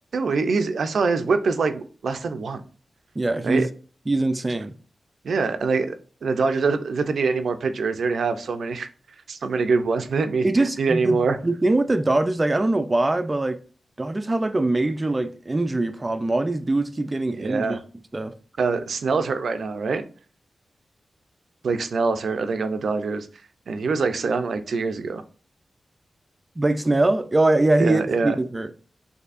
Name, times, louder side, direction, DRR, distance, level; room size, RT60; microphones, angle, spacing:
voice 1, 0.1-2.6 3.4-3.7 5.2-5.9 6.2-8.9 9.3-10.5 10.8-11.4 17.4-17.8 18.6-20.0 21.6-23.3 23.7-25.2 27.8-28.4, right 4 dB, 80° right, 0.5 m, -24 dB
voice 2, 3.2-3.7 4.1-4.8 10.4-13.6 14.0-17.8 18.1-18.3 26.6-28.7, right 2 dB, 25° right, 0.4 m, -22 dB
6.7 x 2.7 x 2.5 m
wide cardioid pair, 115°, 0 cm